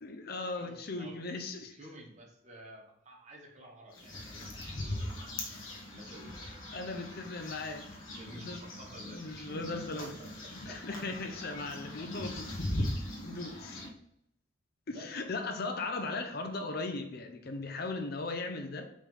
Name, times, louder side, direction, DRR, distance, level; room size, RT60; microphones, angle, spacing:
voice 1, 0.0-1.8 6.7-7.8 8.3-8.6 9.0-10.1 10.6-12.4 13.2-13.8 14.9-18.9, left 3 dB, 50° left, 0.7 m, -38 dB
voice 2, 0.5-1.2 1.7-5.4 5.9-6.6 7.0-7.3 8.2-10.3 10.7-11.0 14.9-15.1, right 1 dB, 35° right, 1.4 m, -51 dB
sound 1, 3.9-13.9, left 1 dB, 85° left, 1.5 m, -40 dB
5.2 x 3.5 x 5.5 m
head